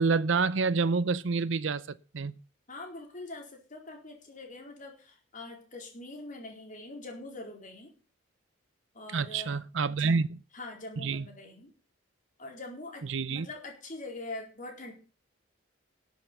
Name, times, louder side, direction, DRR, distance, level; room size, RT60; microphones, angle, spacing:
voice 1, 0.0-1.8 2.1-2.3 9.1-10.4 11.0-11.3 13.0-13.5, right 4 dB, 70° right, 0.6 m, -28 dB
voice 2, 2.7-7.9 8.9-9.6 9.9-10.1 10.5-11.7 12.4-14.9, left 2 dB, 40° left, 4.3 m, -43 dB
13.0 x 7.9 x 6.8 m
head